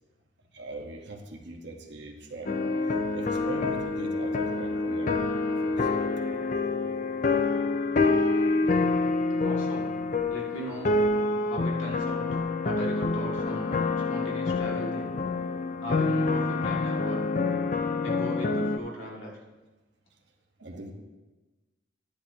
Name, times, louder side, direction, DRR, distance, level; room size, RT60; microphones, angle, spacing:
voice 1, 0.5-2.5 3.1-6.1 20.6-20.9, right 2 dB, 60° right, 2 dB, 1.1 m, -41 dB
sound 1, 2.5-18.8, left 3 dB, 40° left, 0.4 m, -27 dB
voice 2, 9.4-10.0 10.3-11.0 11.4-13.8 14.1-15.1 15.8-17.2 18.0-19.3, equal, 85° left, -3 dB, 2.1 m, -38 dB
10.5 x 10.0 x 2.8 m, 1.2 s
head